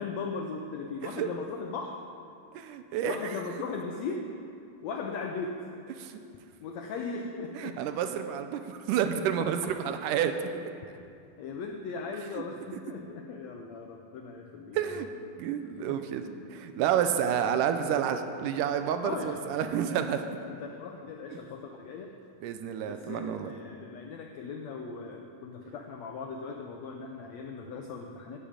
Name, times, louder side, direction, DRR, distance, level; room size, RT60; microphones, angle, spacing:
voice 1, 0.0-2.1 3.0-4.3 4.8-5.7 6.6-7.8 9.6-9.9 11.4-15.0 15.8-16.0 19.0-19.8 20.5-22.2 22.9-28.4, left 4 dB, 85° left, 3 dB, 1.5 m, -38 dB
voice 2, 2.5-3.2 6.0-6.2 7.6-10.3 12.4-12.5 14.7-15.1 15.4-20.2 22.4-23.5, right 9 dB, 80° right, 8 dB, 2.1 m, -29 dB
11.5 x 7.0 x 8.7 m, 2.5 s
omnidirectional pair, 3.9 m